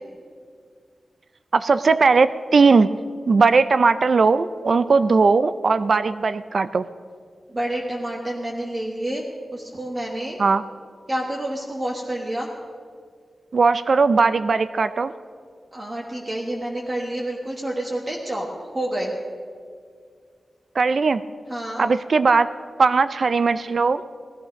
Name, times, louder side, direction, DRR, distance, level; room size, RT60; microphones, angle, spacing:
voice 1, 1.5-2.9 3.3-6.9 10.4-10.6 13.5-15.1 20.7-21.2 21.8-22.5 22.8-24.0, right 4 dB, 50° right, 13 dB, 0.3 m, -18 dB
voice 2, 7.5-9.2 9.5-10.4 11.1-12.5 15.7-18.5 18.7-19.1 21.5-21.8, right 1 dB, 25° right, -1 dB, 1.3 m, -28 dB
17.0 x 13.0 x 5.2 m, 2.1 s
wide cardioid pair, 160°, 0 cm